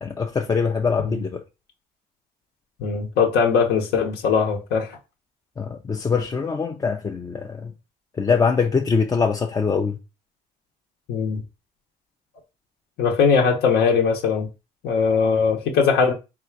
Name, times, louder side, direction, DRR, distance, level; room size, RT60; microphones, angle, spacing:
voice 1, 0.0-1.4 5.6-7.7 8.1-10.0, left 5 dB, 20° left, 0.4 m, -23 dB
voice 2, 2.8-5.0 11.1-11.4 13.0-14.5 14.8-16.1, left 5 dB, 75° left, 0.9 m, -20 dB
3.7 x 2.4 x 4.5 m
cardioid pair, 110°, 17 cm